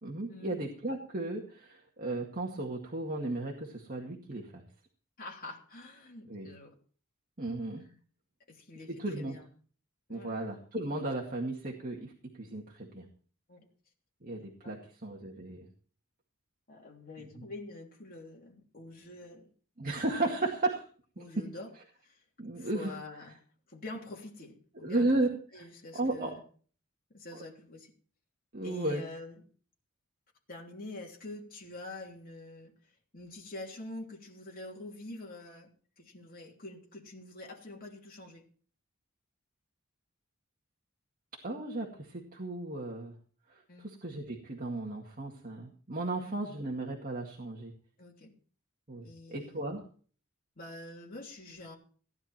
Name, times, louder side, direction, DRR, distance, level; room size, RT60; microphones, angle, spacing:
voice 1, 0.0-4.6 6.3-6.5 7.4-7.9 9.0-9.4 10.1-13.0 14.2-14.8 15.0-15.7 17.3-17.4 19.8-20.9 22.4-23.0 24.8-25.3 25.5-25.6 25.9-26.3 28.5-29.0 41.4-43.1 43.5-47.7 48.9-49.8, right 2 dB, 40° right, 0 dB, 2.1 m, -35 dB
voice 2, 5.2-6.7 8.5-8.9 9.2-9.5 10.1-10.4 13.5-13.7 14.3-14.8 16.7-19.5 21.2-21.7 22.0-22.2 22.6-23.4 23.7-25.1 25.5-26.4 27.1-27.9 28.6-29.4 30.5-32.7 33.1-35.7 36.0-38.4 43.7-43.9 46.2-46.4 48.0-48.3 49.0-49.6 50.6-51.7, left 2 dB, 45° left, -1 dB, 3.2 m, -46 dB
16.5 x 10.5 x 4.4 m, 0.43 s
head